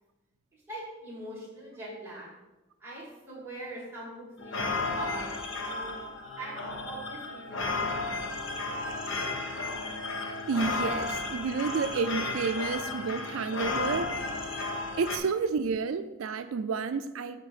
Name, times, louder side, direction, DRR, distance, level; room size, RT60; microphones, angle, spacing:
voice 1, 0.5-2.3 2.8-5.9 6.4-6.6 6.8-8.5, right 1 dB, 10° right, -7 dB, 2.7 m, -42 dB
sound 1, 4.4-15.2, left 3 dB, 70° left, 1.1 m, -33 dB
voice 2, 10.5-14.3 15.0-17.4, right 5 dB, 85° right, 11 dB, 0.4 m, -30 dB
8.9 x 3.4 x 6.5 m, 1.1 s
head